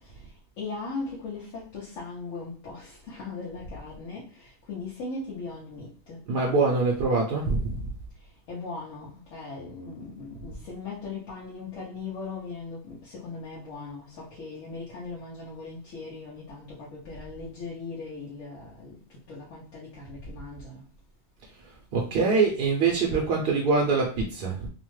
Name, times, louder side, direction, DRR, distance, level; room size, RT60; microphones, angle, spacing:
voice 1, 0.6-6.2 8.5-19.0 19.3-20.8, left 3 dB, 80° left, -6 dB, 1.1 m, -39 dB
voice 2, 6.3-7.8 21.9-24.7, right 4 dB, 60° right, -1 dB, 0.6 m, -24 dB
2.9 x 2.1 x 3.1 m, 0.40 s
omnidirectional pair, 1.3 m